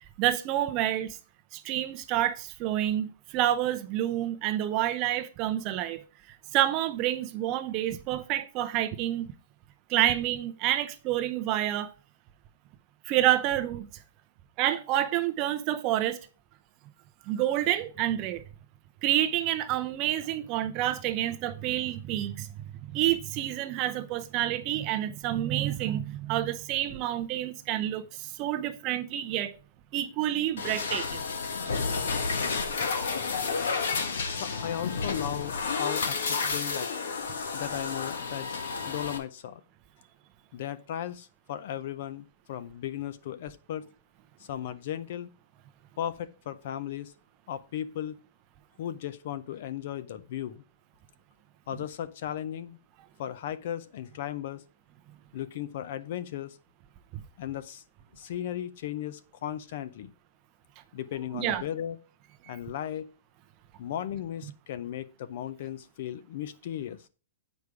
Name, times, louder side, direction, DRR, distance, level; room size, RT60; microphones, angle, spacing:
voice 1, 0.2-1.2 1.5-6.0 6.3-9.3 9.9-11.9 13.0-13.9 14.6-16.2 17.3-18.4 19.0-22.5 22.8-29.5 29.9-31.2 61.3-61.6 62.4-62.5, right 13 dB, 25° right, 0.6 m, -28 dB
sound 1, 30.6-39.2, left 4 dB, 85° left, 1.4 m, -31 dB
voice 2, 34.3-36.9 37.5-38.5 38.9-39.6 40.5-43.9 44.4-45.3 46.0-47.1 47.5-48.2 48.8-50.6 51.7-52.8 53.2-54.6 55.3-56.6 57.4-57.8 58.1-60.1 60.9-62.0 62.5-63.1 63.8-67.0, left 11 dB, 45° left, 0.5 m, -36 dB
8.2 x 5.0 x 4.7 m
hypercardioid pair, 175°, 0 cm